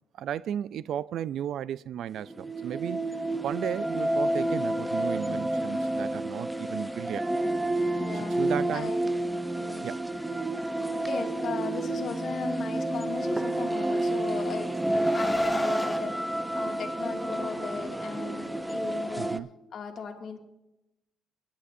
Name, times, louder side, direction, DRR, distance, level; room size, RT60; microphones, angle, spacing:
voice 1, 0.2-3.1 3.4-7.2 7.9-8.0 8.4-8.9 9.8-10.0 19.2-19.5, right 10 dB, 70° right, 0.3 m, -34 dB
sound 1, 2.2-19.4, right 1 dB, 5° right, 0.6 m, -30 dB
voice 2, 8.0-8.4 8.7-9.1 9.5-9.9 11.1-19.3 19.7-20.4, left 5 dB, 55° left, 2.2 m, -37 dB
Car, 13.5-16.0, left 1 dB, 10° left, 1.0 m, -33 dB
20.5 x 11.5 x 2.6 m
cardioid pair, 90°, 0 cm